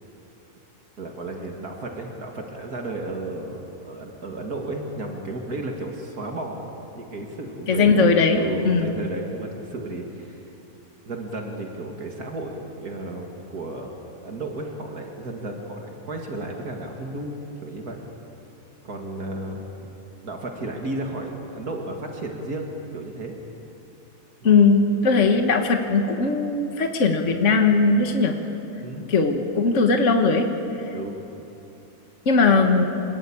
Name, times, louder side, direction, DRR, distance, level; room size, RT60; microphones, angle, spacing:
voice 1, 1.0-10.5 11.0-18.0 18.8-19.9 20.2-23.3 24.4-24.5 28.8-29.1 30.9-31.2, right 2 dB, 75° right, 1 dB, 2.6 m, -33 dB
voice 2, 7.7-8.9 24.4-28.3 29.1-30.5 30.7-30.9 32.3-32.8, left 4 dB, 50° left, 4 dB, 1.8 m, -19 dB
26.0 x 21.5 x 8.7 m, 3.0 s
omnidirectional pair, 1.6 m